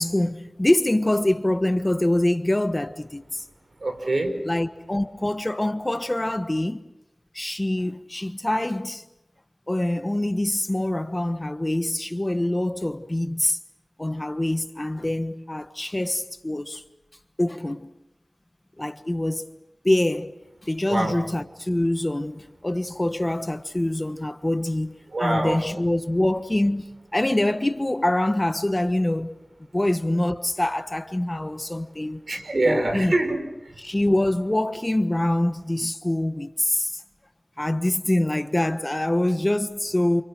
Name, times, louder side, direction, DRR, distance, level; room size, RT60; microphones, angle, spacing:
voice 1, 0.0-3.4 4.4-6.8 7.3-9.0 9.7-13.6 14.0-16.8 17.4-17.9 18.8-19.5 19.8-20.3 20.6-29.4 29.7-32.2 32.6-33.1 33.8-37.0 37.6-40.2, left 1 dB, 25° left, 1.3 m, -25 dB
voice 2, 3.8-4.4 20.9-21.1 25.1-25.6 32.3-33.4, right 2 dB, 65° right, 5.0 m, -24 dB
30.0 x 28.0 x 6.3 m
wide cardioid pair, 50°, 0 cm